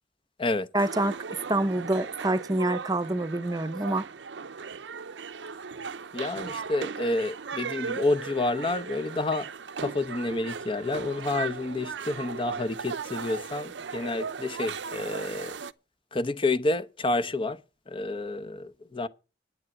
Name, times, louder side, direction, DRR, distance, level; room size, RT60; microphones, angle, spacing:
voice 1, 0.7-4.1, right 2 dB, 20° right, 0.8 m, -27 dB
sound 1, 0.8-15.7, right 5 dB, 75° right, 0.6 m, -37 dB
voice 2, 6.1-9.5 9.8-15.5 16.1-17.6 17.9-19.1, left 2 dB, 30° left, 0.8 m, -29 dB
10.5 x 9.6 x 6.0 m
head